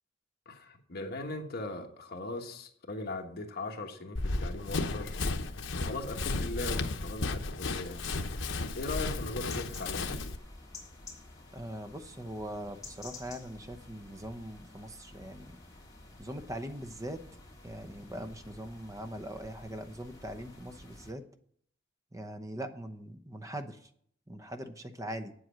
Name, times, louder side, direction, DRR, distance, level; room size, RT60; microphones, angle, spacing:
voice 1, 0.4-5.2 5.8-8.1 8.7-10.4, left 2 dB, 55° left, 3 dB, 1.5 m, -39 dB
Run, 4.1-10.4, left 3 dB, 80° left, 0.9 m, -34 dB
sound 1, 7.7-21.1, left 2 dB, 20° left, 3.1 m, -51 dB
voice 2, 11.5-15.6 16.2-17.2 17.6-21.2 22.1-23.8 24.3-25.3, right 1 dB, 20° right, 9 dB, 0.9 m, -41 dB
8.7 x 7.8 x 7.4 m, 0.63 s
head